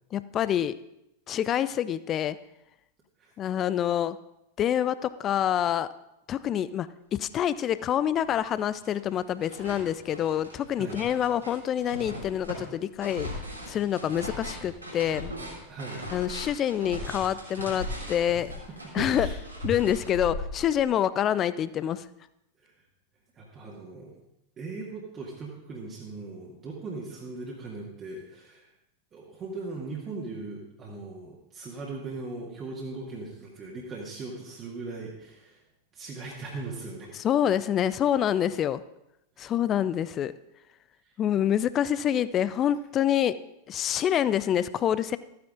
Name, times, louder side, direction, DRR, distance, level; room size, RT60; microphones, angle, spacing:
voice 1, 0.1-0.7 1.3-2.4 3.4-4.2 4.6-5.9 6.3-13.3 13.7-15.3 16.1-18.5 18.9-19.3 19.6-22.0 37.2-38.8 39.4-40.3 41.2-43.4 43.7-45.2, left 10 dB, 30° left, 16 dB, 0.4 m, -26 dB
sound 1, 7.8-7.9 8.2-8.9 9.2-20.9, left 1 dB, 85° right, 3.0 m, -38 dB
voice 2, 15.7-16.1 18.7-19.4 22.6-22.7 23.3-24.1 24.6-28.7 29.1-35.6 35.9-37.1 41.0-41.1, right 3 dB, 25° right, -3 dB, 1.9 m, -39 dB
13.5 x 9.4 x 3.7 m, 0.84 s
figure-of-eight pair, 90°, 0 cm